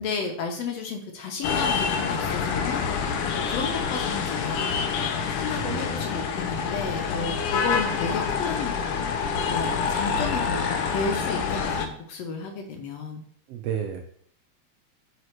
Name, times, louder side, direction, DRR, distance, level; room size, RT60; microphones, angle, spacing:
voice 1, 0.0-2.8 3.4-4.9 5.3-8.8 9.5-10.6 10.9-13.2, left 4 dB, 75° left, 3 dB, 1.7 m, -32 dB
sound 1, 1.4-11.9, left 6 dB, 90° left, 1.3 m, -27 dB
voice 2, 5.5-6.0 13.5-14.0, right 8 dB, 80° right, 4 dB, 1.5 m, -31 dB
7.9 x 4.2 x 3.2 m, 0.63 s
omnidirectional pair, 3.3 m